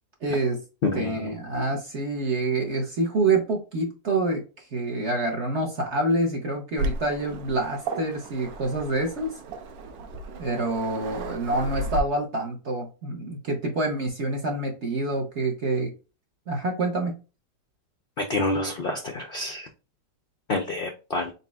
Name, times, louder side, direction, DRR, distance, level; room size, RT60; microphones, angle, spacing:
voice 1, 0.2-0.6 0.9-4.4 4.7-9.3 10.4-15.9 16.5-17.1, right 2 dB, 55° right, 2 dB, 0.9 m, -27 dB
voice 2, 0.8-1.4 18.2-19.7 20.5-21.3, left 2 dB, 85° left, 3 dB, 0.4 m, -28 dB
Waves surf, 6.8-12.0, right 2 dB, 90° right, 1.4 m, -34 dB
4.2 x 4.0 x 2.3 m, 0.31 s
omnidirectional pair, 1.9 m